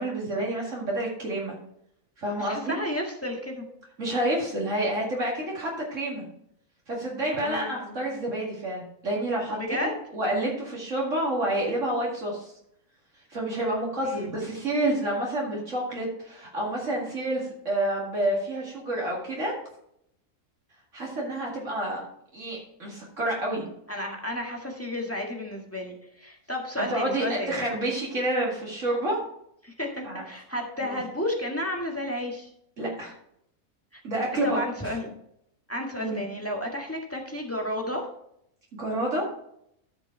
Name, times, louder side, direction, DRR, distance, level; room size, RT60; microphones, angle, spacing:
voice 1, 0.0-1.5 2.2-2.8 4.0-6.2 6.9-12.5 13.3-19.5 20.9-22.0 22.3-23.7 26.8-29.2 30.0-30.2 30.8-31.0 32.8-33.1 34.0-34.6 34.8-35.0 36.0-36.2 38.7-39.3, right 1 dB, 60° right, -3 dB, 2.5 m, -29 dB
voice 2, 2.4-3.7 7.4-8.0 9.5-9.9 14.2-14.3 23.9-27.6 29.6-32.5 33.9-34.0 34.4-35.1 35.7-38.1, left 1 dB, 10° left, 0 dB, 1.7 m, -32 dB
13.0 x 5.2 x 4.4 m, 0.74 s
omnidirectional pair, 1.5 m